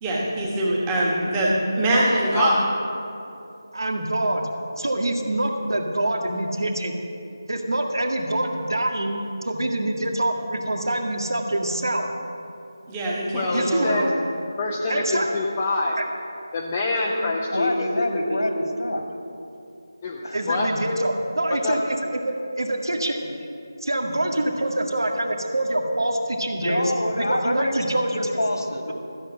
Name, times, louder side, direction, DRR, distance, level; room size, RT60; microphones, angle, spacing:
voice 1, 0.0-2.5 12.9-14.0, right 1 dB, 10° right, -5 dB, 1.6 m, -23 dB
voice 2, 2.3-2.6 13.3-14.1 14.6-16.0 16.5-18.4 20.0-20.2 20.5-20.7 21.5-21.8, left 3 dB, 20° left, -2 dB, 0.7 m, -26 dB
voice 3, 3.7-4.5 4.8-7.0 7.5-12.1 13.5-14.1 14.9-15.3 16.0-16.1 20.3-22.0 22.2-23.3 23.8-26.9 27.2-28.2, right 1 dB, 80° right, 2 dB, 1.9 m, -25 dB
voice 4, 17.0-19.0 20.2-20.4 26.6-28.9, left 1 dB, 80° left, 2 dB, 2.3 m, -26 dB
14.0 x 7.7 x 7.8 m, 2.7 s
figure-of-eight pair, 170°, 2 cm